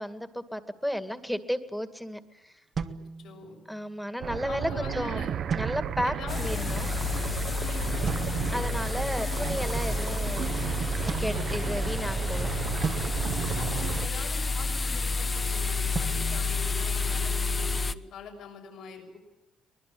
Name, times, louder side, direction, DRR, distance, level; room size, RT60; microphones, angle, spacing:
voice 1, 0.0-2.5 3.7-5.3 5.5-6.9 8.5-10.6 11.0-12.5, equal, ahead, 10 dB, 2.3 m, -33 dB
sound 1, 2.8-3.8 5.5-6.3 8.1-8.7 11.1-12.1 12.8-14.3 15.9-17.5, right 5 dB, 50° right, 1.7 m, -37 dB
voice 2, 3.2-3.6 4.5-5.3 6.0-6.7 7.6-7.9 13.5-19.2, left 4 dB, 75° left, 3 dB, 6.7 m, -43 dB
sound 2, 4.2-14.1, right 9 dB, 65° right, 1.0 m, -33 dB
sound 3, 6.3-17.9, left 4 dB, 30° left, 1.2 m, -30 dB
24.5 x 20.0 x 8.7 m, 1.0 s
cardioid pair, 90°, 0 cm